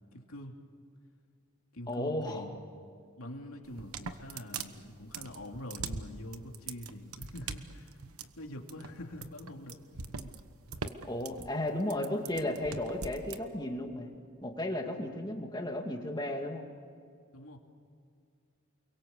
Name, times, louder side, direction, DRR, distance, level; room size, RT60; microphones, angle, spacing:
voice 1, 0.1-0.6 1.7-2.6 3.2-8.0 8.4-9.8 10.2-10.3 14.8-15.4 17.3-17.6, left 1 dB, 75° left, 2 dB, 2.8 m, -45 dB
voice 2, 1.9-2.5 11.0-14.1 14.4-16.7, left 1 dB, 20° left, 3 dB, 2.2 m, -34 dB
sound 1, 3.6-13.4, right 5 dB, 80° right, 1.2 m, -41 dB
29.5 x 22.5 x 7.3 m, 2.3 s
head